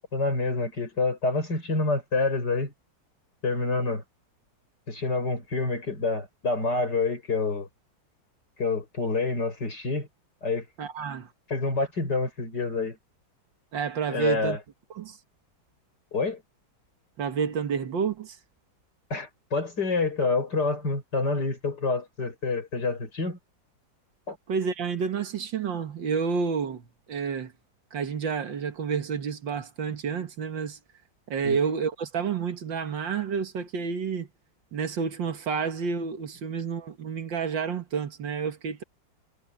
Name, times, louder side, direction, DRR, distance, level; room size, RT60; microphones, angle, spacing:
voice 1, 0.1-2.7 3.4-4.0 4.9-7.7 8.6-10.1 10.4-10.6 11.5-13.0 14.1-14.6 16.1-16.4 19.1-23.4 24.3-24.4 31.4-31.6, left 3 dB, 60° left, 6.6 m, -27 dB
voice 2, 10.8-11.3 13.7-14.6 14.9-15.2 17.2-18.4 24.5-27.5 27.9-30.8 31.3-34.3 34.7-38.8, right 6 dB, 80° right, 2.2 m, -29 dB
omnidirectional pair, 2.0 m